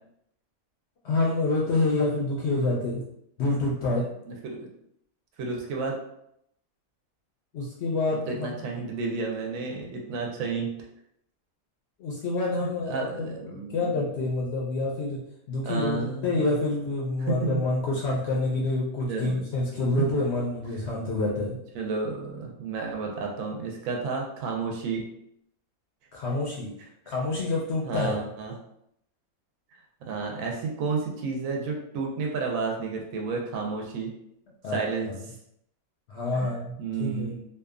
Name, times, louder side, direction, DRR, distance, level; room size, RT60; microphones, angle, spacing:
voice 1, 1.0-3.0 3.4-4.0 7.5-8.6 12.0-15.2 15.5-21.6 26.1-26.7 27.1-28.2 34.6-35.2 36.1-37.4, left 2 dB, 65° left, -4 dB, 0.7 m, -27 dB
voice 2, 4.3-4.7 5.4-6.0 8.3-10.7 12.8-14.1 15.6-16.5 17.2-17.6 19.1-19.4 21.7-25.0 27.8-28.5 30.1-34.1 34.7-35.1 36.3-36.5 36.8-37.4, right 4 dB, 75° right, 0 dB, 1.0 m, -31 dB
2.7 x 2.3 x 2.4 m, 0.76 s
omnidirectional pair, 1.5 m